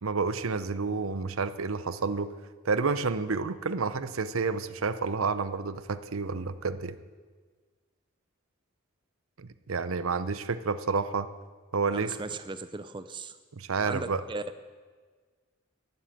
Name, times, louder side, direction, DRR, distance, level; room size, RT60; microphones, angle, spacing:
voice 1, 0.0-2.3 2.6-7.0 9.4-11.3 11.7-12.2 13.5-14.2, right 4 dB, 85° right, 13 dB, 0.7 m, -30 dB
voice 2, 11.9-13.4 13.8-14.4, right 3 dB, 20° right, 11 dB, 0.5 m, -37 dB
12.0 x 11.0 x 8.9 m, 1.5 s
head